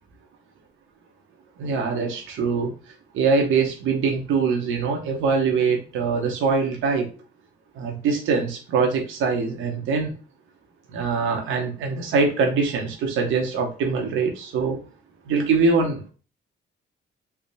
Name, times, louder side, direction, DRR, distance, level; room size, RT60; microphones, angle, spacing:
voice 1, 1.6-2.7 3.1-7.1 7.8-10.1 10.9-14.8 15.3-16.0, right 4 dB, 85° right, 2 dB, 0.9 m, -23 dB
3.3 x 2.1 x 4.0 m, 0.35 s
cardioid pair, 90°, 20 cm